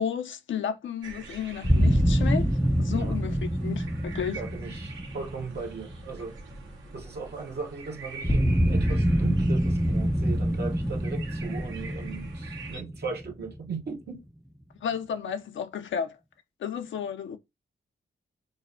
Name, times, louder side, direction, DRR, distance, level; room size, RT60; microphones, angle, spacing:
voice 1, 0.0-2.5 2.8-4.4 14.8-16.2 16.6-17.4, left 8 dB, 70° left, 0.6 m, -32 dB
sound 1, 1.0-12.8, right 3 dB, 80° right, 1.1 m, -45 dB
sound 2, 1.6-6.6 8.2-13.9, equal, ahead, 0.3 m, -26 dB
voice 2, 4.3-6.4 6.9-14.2, right 4 dB, 55° right, 0.8 m, -38 dB
6.1 x 2.1 x 2.6 m
cardioid pair, 65°, 20 cm